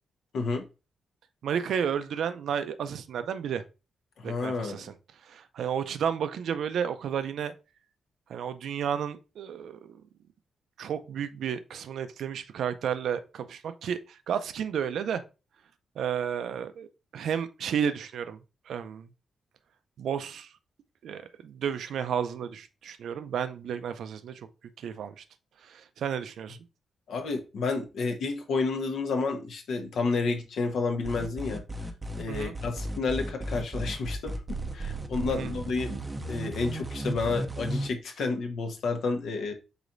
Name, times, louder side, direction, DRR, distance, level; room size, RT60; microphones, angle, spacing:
voice 1, 1.4-3.6 4.2-4.9 5.2-7.5 8.3-10.0 10.8-15.2 16.0-16.9 17.1-18.4 18.7-19.1 20.0-20.5 21.0-24.5 24.8-25.2 25.6-26.6 32.3-32.6 35.3-35.5, right 8 dB, 75° right, 0.5 m, -32 dB
voice 2, 4.2-4.9 27.1-31.6 32.2-34.3 34.7-36.0 36.3-39.5, left 4 dB, 70° left, 0.9 m, -30 dB
sound 1, 31.0-37.9, right 1 dB, 15° right, 0.5 m, -34 dB
4.9 x 4.1 x 2.5 m
wide cardioid pair, 165°, 0 cm